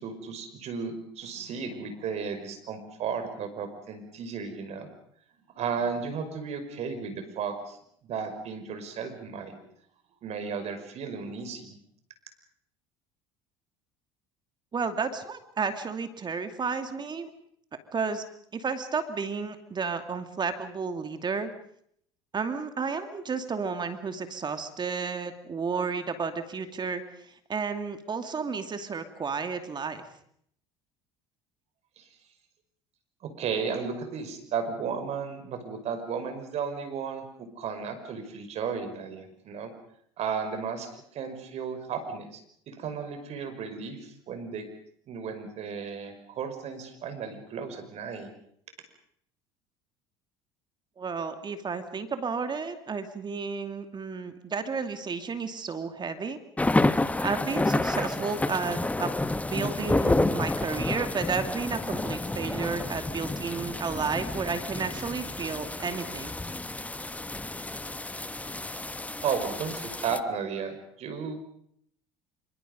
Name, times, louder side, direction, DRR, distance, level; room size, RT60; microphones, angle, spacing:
voice 1, 0.0-4.9 5.5-7.8 8.0-9.6 10.2-11.7 32.0-32.1 33.2-39.7 40.2-42.4 42.7-44.7 45.1-48.3 68.7-68.8 69.2-71.4, right 6 dB, 55° right, 8 dB, 5.6 m, -34 dB
voice 2, 14.7-17.3 17.9-18.2 18.5-21.5 22.3-30.0 51.0-56.4 57.2-59.2 59.5-66.3, right 5 dB, 35° right, 8 dB, 2.5 m, -32 dB
sound 1, 56.6-70.2, left 2 dB, 10° left, 1.1 m, -30 dB
26.5 x 25.5 x 5.4 m, 0.67 s
hypercardioid pair, 70°, 13 cm